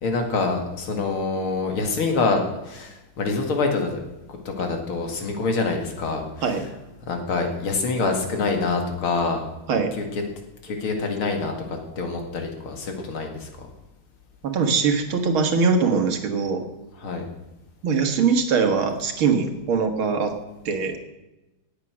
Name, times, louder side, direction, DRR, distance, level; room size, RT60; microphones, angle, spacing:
voice 1, 0.0-4.0 4.3-6.5 7.1-9.4 10.0-10.2 10.6-13.7 17.0-17.3, left 3 dB, 80° left, 4 dB, 2.9 m, -26 dB
voice 2, 14.4-16.6 17.8-20.3 20.7-21.0, right 5 dB, 75° right, 5 dB, 2.4 m, -22 dB
18.0 x 8.4 x 6.3 m, 1.0 s
omnidirectional pair, 2.3 m